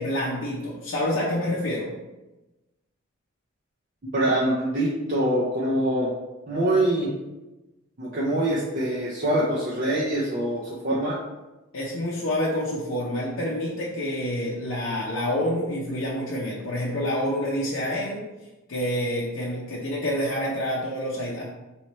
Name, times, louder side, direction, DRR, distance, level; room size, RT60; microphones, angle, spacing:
voice 1, 0.0-1.9 11.7-18.3 18.7-21.4, left 1 dB, 60° left, -5 dB, 0.6 m, -27 dB
voice 2, 4.1-6.1 6.5-7.1 8.0-11.2, right 1 dB, 40° right, -6 dB, 0.5 m, -24 dB
3.2 x 3.1 x 4.1 m, 1.1 s
head